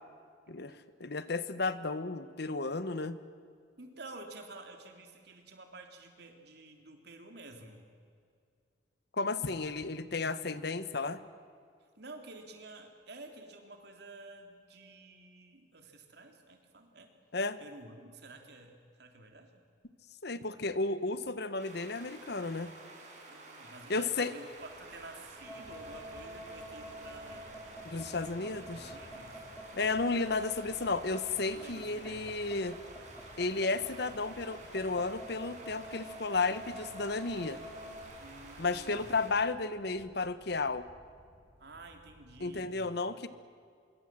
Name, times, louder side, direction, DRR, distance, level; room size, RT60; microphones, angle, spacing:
voice 1, 1.0-3.2 9.1-11.2 17.3-17.6 20.2-22.7 23.9-24.3 27.8-29.0 29.7-32.8 33.4-37.6 38.6-40.9 42.4-43.3, left 3 dB, 60° left, 14 dB, 1.1 m, -33 dB
voice 2, 3.8-7.9 12.0-17.1 17.6-19.6 23.3-27.5 28.3-29.4 31.5-32.3 38.2-39.1 41.6-43.0, right 2 dB, 60° right, 4 dB, 3.5 m, -51 dB
sound 1, 21.6-39.3, right 2 dB, 40° right, 5.8 m, -51 dB
sound 2, 24.5-42.7, equal, 30° left, 3.4 m, -58 dB
sound 3, 25.4-38.0, right 1 dB, 5° left, 4.5 m, -47 dB
26.0 x 23.0 x 7.7 m, 2.3 s
head